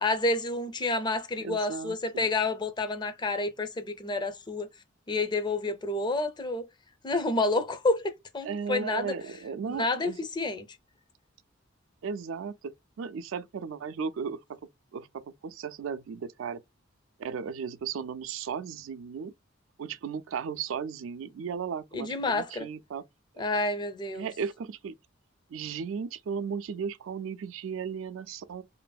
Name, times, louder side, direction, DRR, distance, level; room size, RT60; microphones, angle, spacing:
voice 1, 0.0-4.7 5.1-6.7 7.0-9.2 9.6-10.7 21.9-22.7 23.4-24.3, left 2 dB, 20° left, 0.4 m, -29 dB
voice 2, 1.4-2.3 8.4-10.2 12.0-14.6 14.9-16.6 17.2-19.3 19.8-23.0 24.1-24.9 25.5-28.6, right 6 dB, 80° right, 0.4 m, -35 dB
2.7 x 2.5 x 2.2 m
head